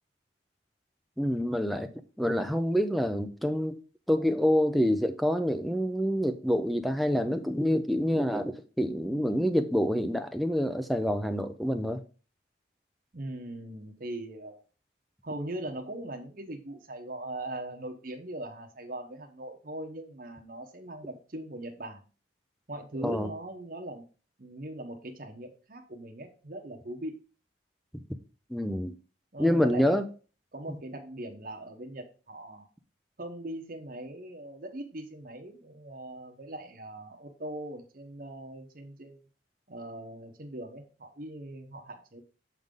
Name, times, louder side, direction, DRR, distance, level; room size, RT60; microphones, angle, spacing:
voice 1, 1.2-1.9 2.2-3.8 4.1-12.0 23.0-23.3 27.9-28.0 28.5-28.9 29.4-30.0 30.7-30.8, equal, ahead, 0.5 m, -27 dB
voice 2, 13.1-14.6 15.2-22.0 22.7-24.0 24.4-27.2 29.3-30.0 30.5-32.7 33.2-39.2 39.7-42.2, right 1 dB, 45° right, 0.9 m, -40 dB
7.7 x 3.8 x 5.2 m
head